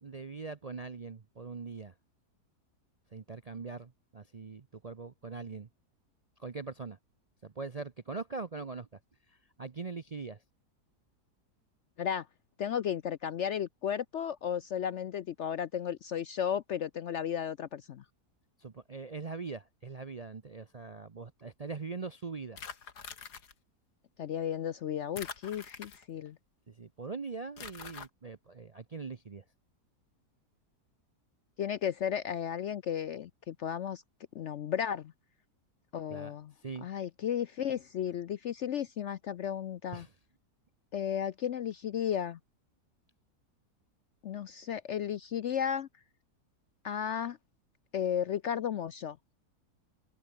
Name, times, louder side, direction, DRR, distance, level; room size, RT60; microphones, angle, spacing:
voice 1, 0.0-1.9 3.1-5.7 6.4-7.0 7.4-8.9 9.6-10.4 18.6-22.6 26.7-29.4 36.1-36.3 36.6-36.9 39.9-40.1, right 4 dB, 40° right, 0.5 m, -42 dB
voice 2, 12.6-18.0 24.2-26.4 31.6-34.0 34.3-35.1 35.9-36.5 36.8-40.1 40.9-42.4 44.2-45.9 46.8-47.4 47.9-49.2, left 9 dB, 65° left, 0.7 m, -34 dB
sound 1, 22.6-23.5 25.2-26.3 27.6-28.1, left 6 dB, 85° left, 2.5 m, -44 dB
omnidirectional pair, 1.7 m